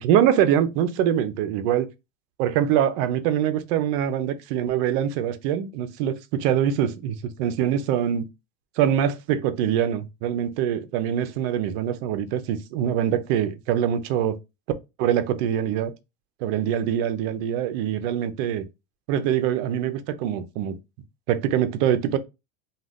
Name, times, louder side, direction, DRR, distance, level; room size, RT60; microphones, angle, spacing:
voice 1, 0.0-1.9 2.4-8.3 8.8-14.3 15.0-15.9 16.4-18.7 19.1-20.8 21.3-22.2, right 10 dB, 60° right, 0.6 m, -24 dB
2.4 x 2.3 x 3.4 m
supercardioid pair, 130°, 35 cm